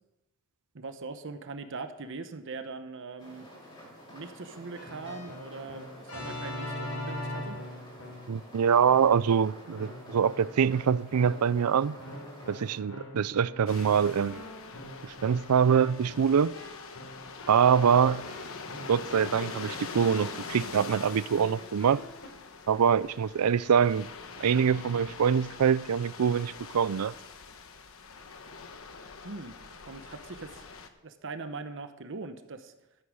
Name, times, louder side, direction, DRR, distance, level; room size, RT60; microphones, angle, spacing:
voice 1, 0.7-3.5 4.1-7.6 29.2-29.6 29.9-30.7 31.0-32.7, right 3 dB, 60° right, 0.9 m, -41 dB
sound 1, 3.2-12.8, equal, 20° left, 5.4 m, -49 dB
Keyboard (musical), 4.7-8.4 8.9-9.4 9.7-22.3, left 1 dB, 85° left, 3.7 m, -43 dB
voice 2, 8.3-12.0 12.5-14.4 15.0-16.5 17.5-18.2 18.9-22.0 22.7-24.1 24.4-27.1, right 7 dB, 85° right, 0.4 m, -24 dB
sound 2, 13.7-30.9, left 4 dB, 65° left, 1.2 m, -44 dB
13.5 x 8.6 x 6.3 m
head